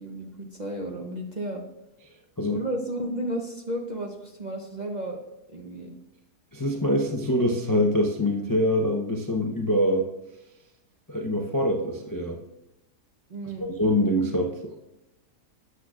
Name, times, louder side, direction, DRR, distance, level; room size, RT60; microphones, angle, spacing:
voice 1, 0.0-1.6 2.5-5.2 5.5-6.0 13.3-13.7, right 1 dB, 35° right, 1 dB, 0.7 m, -33 dB
voice 2, 6.5-10.1 11.1-12.4 13.8-14.8, equal, 25° left, 1 dB, 0.5 m, -24 dB
12.5 x 8.1 x 2.4 m, 0.91 s
omnidirectional pair, 1.8 m